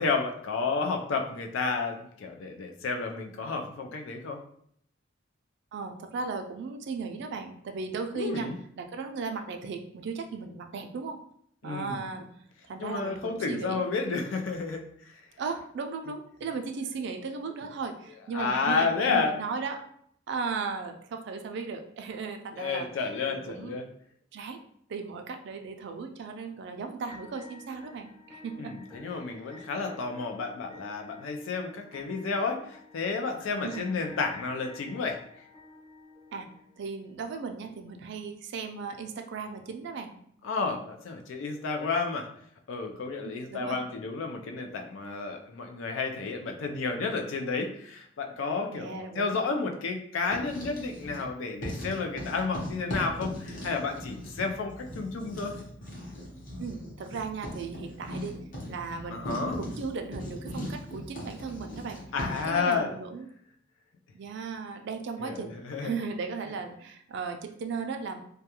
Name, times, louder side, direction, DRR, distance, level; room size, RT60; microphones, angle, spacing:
voice 1, 0.0-4.4 8.1-8.5 11.6-12.1 12.8-15.1 18.3-19.3 22.5-23.8 28.6-35.2 40.4-42.3 42.7-55.5 59.1-59.6 62.1-62.9 65.2-65.9, left 4 dB, 80° left, 3 dB, 0.4 m, -31 dB
voice 2, 5.7-8.5 8.8-11.2 11.6-12.2 12.7-13.8 15.4-19.8 20.3-22.9 23.3-23.7 24.3-24.6 24.9-28.8 29.1-29.4 33.6-33.9 36.3-36.5 36.8-40.2 40.7-40.8 43.2-43.8 48.7-49.4 56.6-58.3 58.7-62.0 62.4-63.3 64.1-65.5 65.8-68.2, right 5 dB, 60° right, 6 dB, 0.3 m, -36 dB
sound 1, 27.1-37.1, left 3 dB, 15° left, 0.5 m, -51 dB
Writing, 50.2-51.3 51.6-62.6, left 1 dB, 45° left, 0.8 m, -39 dB
2.2 x 2.2 x 2.8 m, 0.66 s
head